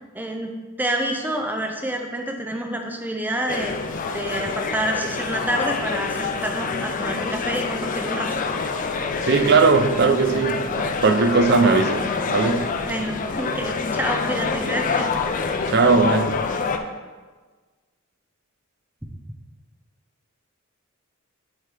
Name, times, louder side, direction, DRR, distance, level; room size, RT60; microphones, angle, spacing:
voice 1, 0.1-3.8 4.1-8.3 12.9-15.1, right 1 dB, 10° right, 3 dB, 0.6 m, -28 dB
sound 1, 3.5-16.8, left 4 dB, 40° left, 0.4 m, -26 dB
voice 2, 9.2-12.7 15.7-16.4, right 4 dB, 50° right, 7 dB, 0.5 m, -19 dB
7.8 x 4.6 x 3.4 m, 1.4 s
head